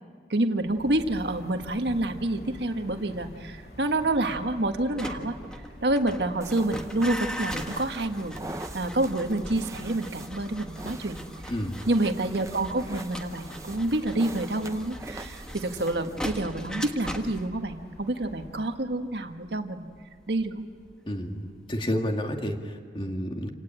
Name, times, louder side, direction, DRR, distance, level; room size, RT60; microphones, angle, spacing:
voice 1, 0.3-5.4 5.8-8.4 8.7-11.3 11.9-19.9 20.3-20.7, right 1 dB, 80° right, 6 dB, 1.5 m, -28 dB
sound 1, 0.6-18.9, left 1 dB, 65° left, 3.0 m, -48 dB
sound 2, 4.8-21.8 22.1-22.5, equal, 5° left, 1.5 m, -41 dB
sound 3, 6.4-16.3, right 2 dB, 15° right, 0.8 m, -44 dB
voice 2, 11.5-11.8 21.1-23.5, equal, 30° left, 4 dB, 2.1 m, -30 dB
27.5 x 18.0 x 8.9 m, 2.1 s
head